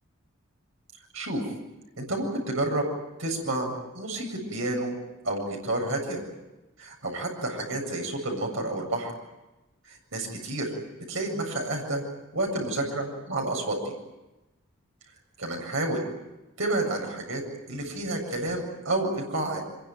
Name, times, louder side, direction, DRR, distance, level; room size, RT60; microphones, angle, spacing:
voice 1, 2.0-2.8 3.2-5.0 5.2-6.2 6.8-9.1 9.9-10.7 11.1-12.0 12.3-13.8 15.4-16.0 16.6-17.4 17.7-19.6, right 2 dB, 70° right, 0 dB, 7.6 m, -30 dB
25.5 x 23.0 x 9.2 m, 1.0 s
head